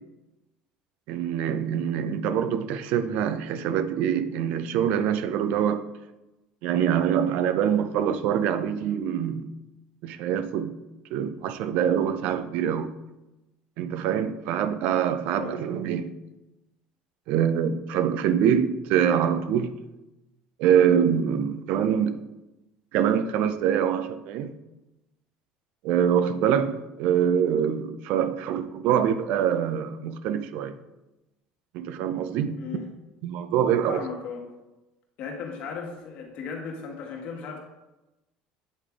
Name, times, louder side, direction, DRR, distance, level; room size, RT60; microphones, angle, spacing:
voice 1, 1.1-5.8 6.6-9.5 10.0-10.8 11.1-12.9 13.8-16.1 17.3-19.7 20.6-22.2 22.9-24.5 25.8-30.7 31.7-32.6 33.2-34.0, right 8 dB, 70° right, 0.5 m, -24 dB
voice 2, 32.6-32.9 33.9-34.5 35.2-37.6, left 5 dB, 65° left, 1.4 m, -36 dB
8.5 x 3.3 x 3.6 m
supercardioid pair, 110°, 3 cm